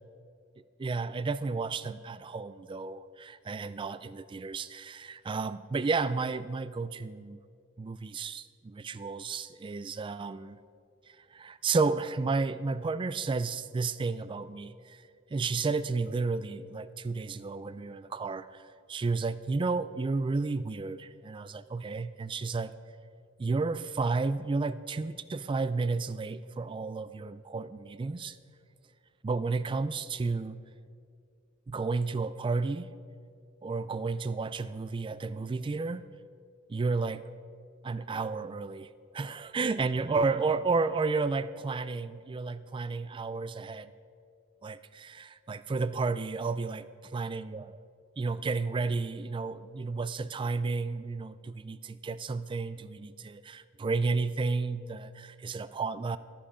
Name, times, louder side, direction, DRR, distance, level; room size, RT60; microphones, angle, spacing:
voice 1, 0.8-7.4 7.8-10.6 11.3-15.0 15.3-22.8 23.4-28.4 29.2-30.6 31.7-32.9 33.6-36.0 36.7-37.2 37.8-43.9 44.6-46.8 47.1-47.8 48.2-56.2, right 4 dB, 25° right, 15 dB, 0.3 m, -32 dB
13.5 x 10.0 x 5.1 m, 2.4 s
head